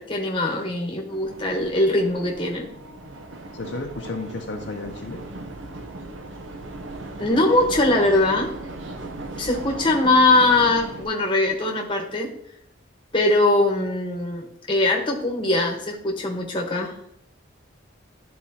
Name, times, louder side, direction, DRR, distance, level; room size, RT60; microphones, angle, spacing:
voice 1, 0.0-2.7 7.2-8.5 9.4-12.3 13.1-16.9, left 2 dB, 25° left, 1 dB, 1.1 m, -21 dB
sound 1, 1.1-11.1, right 2 dB, 70° right, 0.7 m, -37 dB
voice 2, 3.5-5.2, left 3 dB, 65° left, 2 dB, 0.7 m, -32 dB
11.0 x 4.3 x 2.8 m, 0.72 s
head